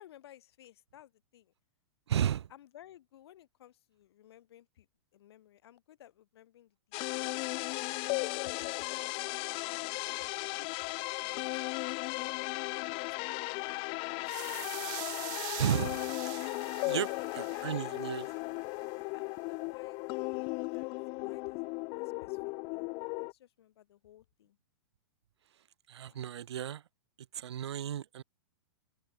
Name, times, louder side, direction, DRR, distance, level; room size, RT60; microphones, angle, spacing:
voice 1, 0.0-1.5 2.5-4.9 5.1-7.4 7.6-7.8 8.2-9.4 9.8-11.7 12.1-14.6 16.7-18.2 18.9-20.9 21.2-24.6 26.1-26.3, left 12 dB, 65° left, 7.8 m, -57 dB
voice 2, 2.1-2.5 15.6-16.5 16.8-17.1 17.4-18.3 25.9-26.8 27.3-28.2, right 10 dB, 75° right, 1.2 m, -33 dB
sound 1, 6.9-23.3, left 30 dB, 40° left, 1.1 m, -36 dB
sound 2, 14.2-18.3, right 28 dB, 45° right, 0.7 m, -43 dB
open air
hypercardioid pair, 125°, 14 cm